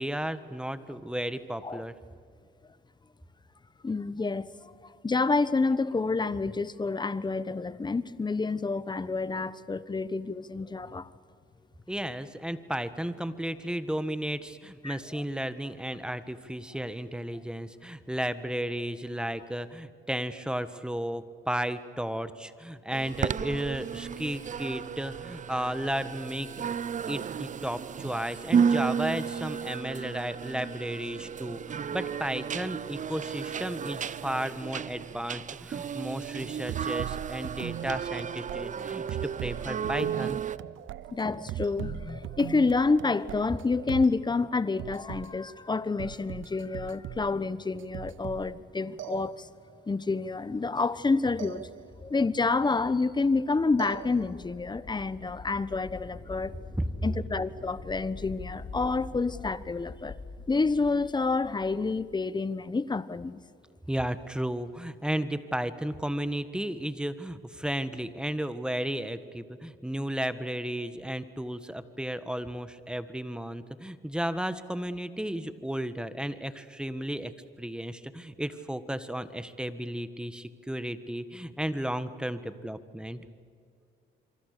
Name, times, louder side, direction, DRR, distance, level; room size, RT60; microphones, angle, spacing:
voice 1, 0.0-1.9 11.9-26.5 27.1-40.4 56.8-57.0 63.9-77.3 77.6-83.2, right 1 dB, 5° right, 1.5 m, -34 dB
voice 2, 3.8-4.7 5.0-11.1 14.8-15.2 41.1-49.5 49.9-51.7 52.0-56.6 57.0-60.2 60.5-63.4, left 3 dB, 20° left, 1.1 m, -28 dB
sound 1, 22.9-40.6, right 7 dB, 40° right, 0.7 m, -33 dB
sound 2, 36.2-44.2 44.8-45.3 46.0-47.4 47.8-48.6 49.0-49.8 51.4-52.2 53.8-54.6, right 13 dB, 75° right, 0.8 m, -40 dB
sound 3, 52.4-62.2, left 4 dB, 40° left, 5.8 m, -46 dB
27.0 x 24.5 x 6.8 m
cardioid pair, 90°, 20 cm